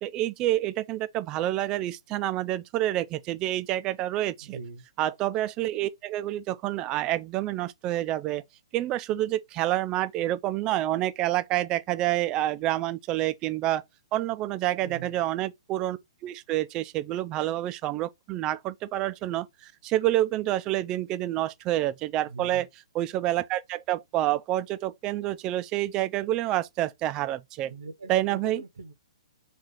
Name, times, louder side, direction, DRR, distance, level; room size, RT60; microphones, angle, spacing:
voice 1, 0.0-4.6 5.0-8.4 8.7-13.8 14.1-22.7 22.9-27.7 28.1-28.6, right 14 dB, 20° right, 0.3 m, -28 dB
voice 2, 4.4-4.8 14.8-15.2 22.2-22.7 27.7-28.9, right 4 dB, 65° right, 0.8 m, -42 dB
4.2 x 2.5 x 3.6 m
figure-of-eight pair, 120°, 3 cm